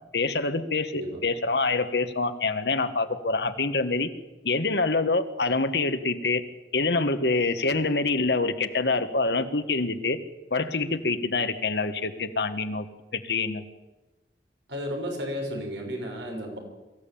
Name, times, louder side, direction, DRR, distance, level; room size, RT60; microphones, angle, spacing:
voice 1, 0.1-4.1 4.4-6.4 6.7-10.2 10.5-12.9 13.1-13.6, left 3 dB, 65° left, 9 dB, 1.6 m, -26 dB
voice 2, 14.7-16.6, equal, 85° right, 2 dB, 6.0 m, -33 dB
23.5 x 15.0 x 8.7 m, 1.1 s
head